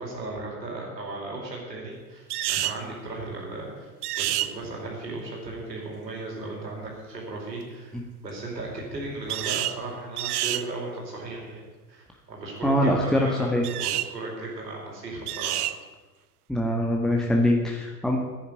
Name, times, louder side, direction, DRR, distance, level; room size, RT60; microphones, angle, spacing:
voice 1, 0.0-7.9 8.2-15.7, right 2 dB, 85° right, -2 dB, 5.0 m, -36 dB
sound 1, 2.3-2.8 4.0-4.5 9.3-9.8 10.2-10.6 13.6-14.1 15.3-15.8, right 14 dB, 65° right, 0.8 m, -28 dB
voice 2, 12.6-13.6 16.5-18.2, left 1 dB, ahead, -1 dB, 1.8 m, -23 dB
11.0 x 10.5 x 9.4 m, 1.3 s
figure-of-eight pair, 85°, 49 cm